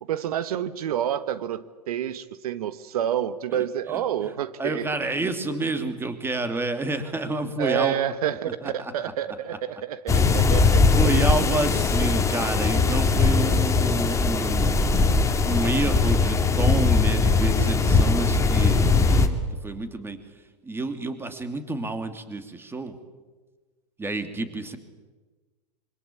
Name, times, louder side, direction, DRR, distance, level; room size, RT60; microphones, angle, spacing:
voice 1, 0.0-4.8 7.6-11.0, right 10 dB, 60° right, 13 dB, 1.3 m, -28 dB
voice 2, 4.6-7.9 8.6-8.9 10.3-10.4 11.0-14.8 15.4-19.4 19.6-20.2 20.6-23.0 24.0-24.8, right 2 dB, 10° right, 8 dB, 2.9 m, -29 dB
sound 1, 10.1-19.3, left 4 dB, 15° left, 2.6 m, -20 dB
26.5 x 25.0 x 8.6 m, 1.3 s
hypercardioid pair, 105°, 21 cm